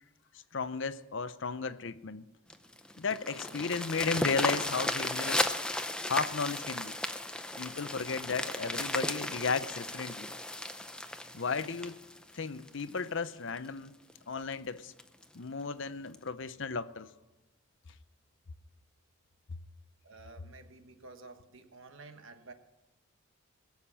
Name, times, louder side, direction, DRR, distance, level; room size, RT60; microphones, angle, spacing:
voice 1, 0.5-2.3 3.0-5.5 6.1-7.0 7.6-10.3 11.3-12.0 12.3-13.9 14.3-14.9 15.3-17.1, left 4 dB, 55° left, 0.6 m, -34 dB
sound 1, 2.5-13.0 13.6-13.7 14.1-14.2 14.5-14.6 15.0-15.3 16.1-16.2, left 1 dB, 5° left, 0.6 m, -35 dB
voice 2, 20.0-22.5, right 3 dB, 60° right, 1.2 m, -51 dB
21.5 x 7.2 x 7.2 m
head